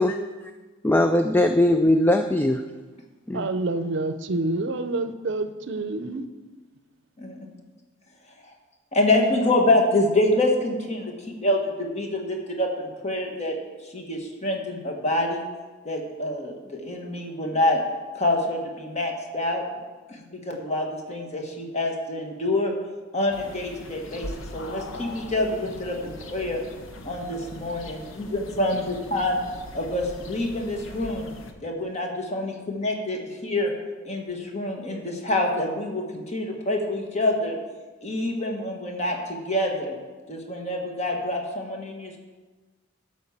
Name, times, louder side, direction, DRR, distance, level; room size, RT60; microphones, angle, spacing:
voice 1, 0.8-2.6 3.3-3.5, left 1 dB, 10° left, 6 dB, 0.3 m, -20 dB
voice 2, 3.3-6.2, right 2 dB, 65° right, 11 dB, 0.6 m, -27 dB
voice 3, 8.9-13.6 13.8-15.4 15.8-17.8 18.1-19.6 20.1-22.7 23.1-26.6 27.0-29.4 29.7-31.3 31.6-33.7 34.0-37.6 38.0-39.9 40.3-42.2, left 1 dB, 35° left, 1 dB, 1.5 m, -26 dB
sound 1, 23.3-31.5, left 1 dB, 80° left, 1.0 m, -40 dB
12.0 x 4.7 x 7.3 m, 1.3 s
head